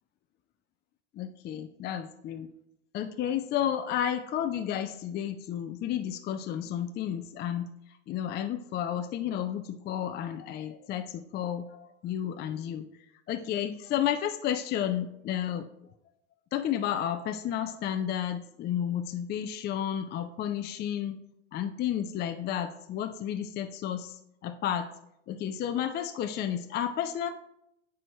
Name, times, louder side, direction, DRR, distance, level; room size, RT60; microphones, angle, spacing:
voice 1, 1.2-2.5 2.9-7.7 8.1-12.9 13.3-15.7 16.5-21.2 21.5-24.2 24.4-24.9 25.3-27.3, left 10 dB, 30° left, 7 dB, 0.5 m, -32 dB
14.0 x 4.7 x 3.1 m, 0.78 s
supercardioid pair, 110°, 36 cm